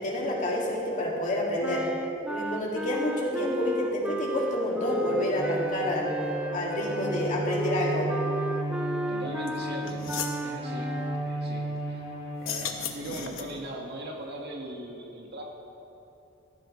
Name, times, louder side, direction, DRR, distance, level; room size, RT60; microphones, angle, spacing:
voice 1, 0.0-1.9 2.3-6.1 6.5-8.1, left 1 dB, 40° left, -3 dB, 2.3 m, -28 dB
sound 1, 1.6-11.3, right 1 dB, 5° right, 0.4 m, -34 dB
Bowed string instrument, 4.9-13.3, right 1 dB, 20° right, 1.8 m, -34 dB
voice 2, 9.1-10.2 10.4-11.0 11.2-12.1 12.4-15.4, right 1 dB, 55° right, 0 dB, 1.8 m, -39 dB
sound 2, 9.5-9.6 9.9-10.4 12.3-13.7, left 7 dB, 75° left, 1.0 m, -35 dB
15.5 x 14.0 x 3.2 m, 2.8 s
head